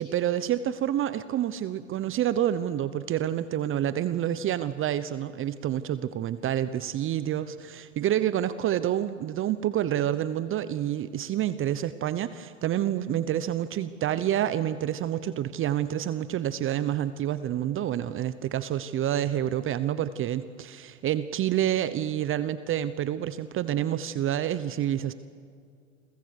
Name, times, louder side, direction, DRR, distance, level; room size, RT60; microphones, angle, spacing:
voice 1, 0.0-25.1, right 11 dB, 35° right, 14 dB, 1.0 m, -28 dB
29.5 x 23.0 x 6.7 m, 2.3 s
hypercardioid pair, 95°, 37 cm